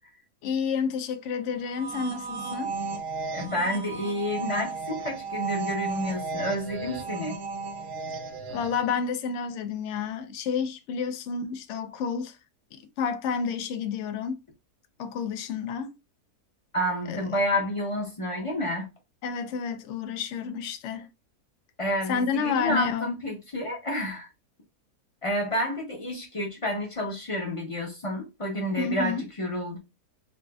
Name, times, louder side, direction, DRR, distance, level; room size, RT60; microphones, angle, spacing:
voice 1, 0.4-2.8 8.5-12.4 12.7-14.4 15.0-16.0 17.1-17.2 19.2-21.1 22.1-23.1 28.8-29.3, left 6 dB, 65° left, 0.7 m, -30 dB
sound 1, 1.6-9.0, right 4 dB, 70° right, 1.0 m, -34 dB
voice 2, 3.3-7.4 16.7-18.9 21.8-24.3 25.2-29.8, equal, 30° left, 0.7 m, -29 dB
4.1 x 2.5 x 2.2 m
omnidirectional pair, 1.7 m